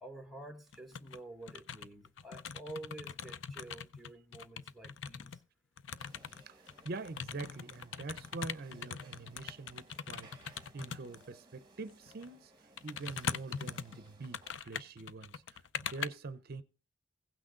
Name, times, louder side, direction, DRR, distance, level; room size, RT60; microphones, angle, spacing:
voice 1, 0.0-5.3, right 2 dB, ahead, 1.2 m, -49 dB
sound 1, 0.7-1.2 1.5-5.4 5.8-11.2 12.1-12.3 12.8-16.1, left 7 dB, 70° left, 0.5 m, -42 dB
sound 2, 6.0-14.5, right 3 dB, 25° right, 1.4 m, -61 dB
voice 2, 6.5-16.6, right 3 dB, 55° right, 0.6 m, -45 dB
16.0 x 6.2 x 3.8 m
head